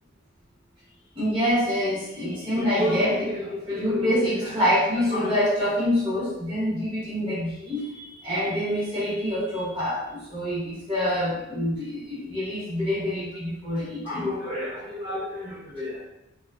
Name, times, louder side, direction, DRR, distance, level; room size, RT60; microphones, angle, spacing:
voice 1, 1.2-16.0, equal, 25° right, -7 dB, 0.9 m, -26 dB
2.9 x 2.3 x 2.3 m, 0.89 s
head